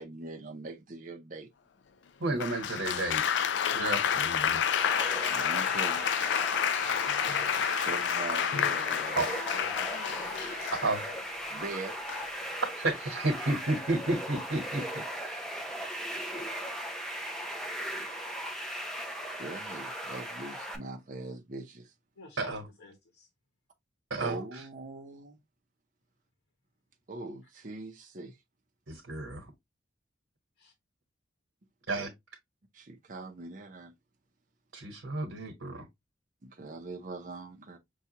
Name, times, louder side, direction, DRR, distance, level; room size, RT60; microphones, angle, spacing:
voice 1, 0.0-1.5 2.3-2.4 5.3-6.1 7.8-9.2 11.5-12.0 19.3-21.9 24.2-25.4 27.1-28.3 31.9-32.1 32.7-33.9 36.4-37.8, right 3 dB, 40° right, 0.7 m, -42 dB
voice 2, 2.2-3.2 3.7-4.7 9.2-9.3 10.8-11.1 12.8-15.5 22.4-22.6 24.1-24.4 28.9-29.5 31.9-32.1 34.7-35.8, right 2 dB, 80° right, 1.2 m, -32 dB
Applause, 2.4-11.3 12.1-12.5, left 8 dB, 60° left, 0.4 m, -30 dB
sound 1, 4.8-20.8, right 1 dB, ahead, 0.6 m, -38 dB
voice 3, 9.2-10.2 17.3-17.5 22.2-23.3, left 2 dB, 90° left, 1.0 m, -49 dB
5.7 x 2.3 x 2.8 m
head